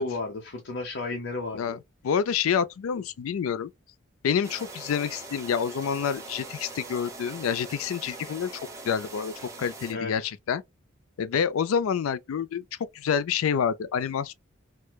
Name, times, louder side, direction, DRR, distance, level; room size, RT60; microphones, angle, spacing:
voice 1, 0.0-1.8 3.0-3.1 9.9-10.3, left 3 dB, 60° left, 0.7 m, -33 dB
voice 2, 2.0-3.7 4.2-9.3 9.6-10.6 11.2-12.6 12.9-14.3, left 7 dB, 80° left, 0.4 m, -28 dB
sound 1, 4.4-9.9, right 3 dB, 15° right, 0.7 m, -42 dB
4.4 x 2.1 x 2.2 m
head